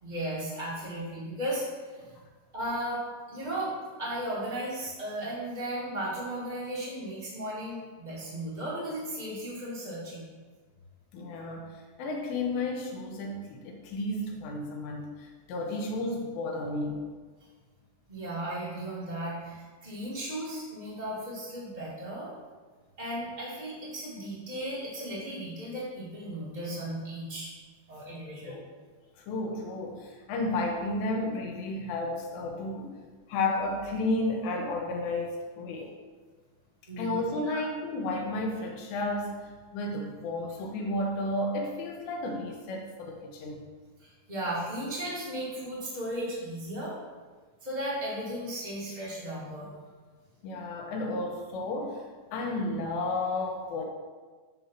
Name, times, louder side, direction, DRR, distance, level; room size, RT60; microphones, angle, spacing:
voice 1, 0.0-2.2 2.5-3.0 3.3-10.2 18.1-22.3 23.0-27.5 27.9-28.6 36.9-37.6 44.0-46.9 47.6-49.7, right 1 dB, 75° right, -8 dB, 0.4 m, -35 dB
voice 2, 11.1-17.0 28.5-28.6 29.3-32.9 33.3-35.9 37.0-43.6 50.4-52.1 52.3-53.8, left 2 dB, 85° left, 1 dB, 3.1 m, -32 dB
13.0 x 5.9 x 2.7 m, 1.4 s
omnidirectional pair, 5.0 m